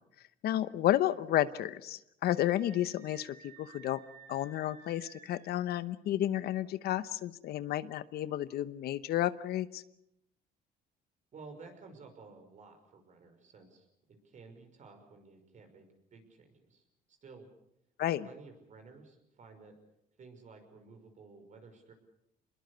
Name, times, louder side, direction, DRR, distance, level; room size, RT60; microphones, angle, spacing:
voice 1, 0.4-4.0 4.3-9.8 18.0-18.3, left 13 dB, 70° left, 15 dB, 0.9 m, -31 dB
Screaming, 2.2-5.6, right 6 dB, 65° right, 5.5 m, -56 dB
voice 2, 11.3-17.5 18.2-19.7 20.2-21.9, right 4 dB, 45° right, 6 dB, 5.7 m, -54 dB
26.5 x 21.5 x 6.8 m, 0.79 s
cardioid pair, 110°, 17 cm